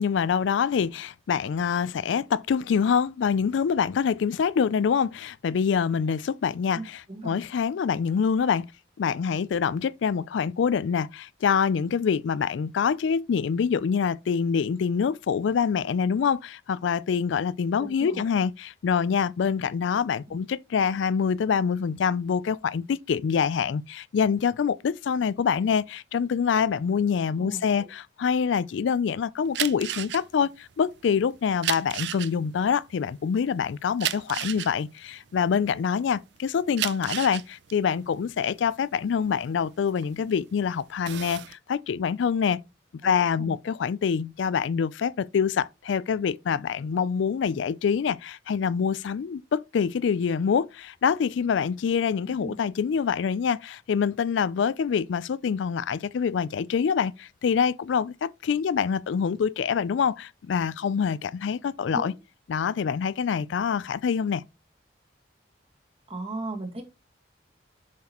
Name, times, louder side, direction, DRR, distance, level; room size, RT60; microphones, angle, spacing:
voice 1, 0.0-8.7 9.0-42.6 43.0-62.1 62.5-64.4, left 6 dB, 80° left, 0.4 m, -25 dB
voice 2, 6.7-7.4 17.8-18.3 27.4-27.9 43.0-43.5 52.2-52.5 61.9-62.2 66.1-66.8, right 2 dB, 30° right, 1.6 m, -37 dB
sound 1, 29.4-36.1 36.5-40.4 40.8-41.5, right 12 dB, 65° right, 0.4 m, -33 dB
7.4 x 5.7 x 2.9 m
head